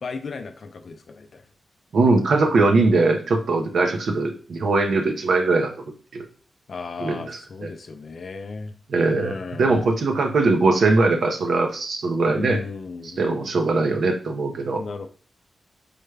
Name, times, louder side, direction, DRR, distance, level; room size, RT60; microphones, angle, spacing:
voice 1, 0.0-1.4 6.7-8.7 9.2-10.0 12.3-13.4 14.8-15.1, left 4 dB, 60° left, 7 dB, 0.4 m, -35 dB
voice 2, 1.9-5.7 6.1-6.2 7.0-7.7 8.9-12.6 13.2-14.8, right 3 dB, 75° right, 3 dB, 0.5 m, -21 dB
4.8 x 2.2 x 3.2 m, 0.41 s
cardioid pair, 90°, 0 cm